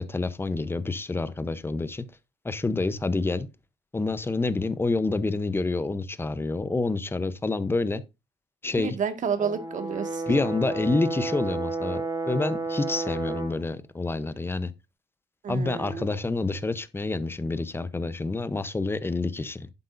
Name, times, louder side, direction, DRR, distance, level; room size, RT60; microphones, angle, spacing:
voice 1, 0.0-2.0 2.4-3.5 3.9-8.0 8.6-9.0 10.3-14.7 15.5-19.7, left 3 dB, 15° left, 0.8 m, -28 dB
voice 2, 8.8-10.2 15.4-16.1, right 7 dB, 50° right, 1.8 m, -30 dB
Brass instrument, 9.4-13.6, right 3 dB, 25° right, 3.2 m, -31 dB
11.0 x 7.8 x 2.6 m
cardioid pair, 110°, 17 cm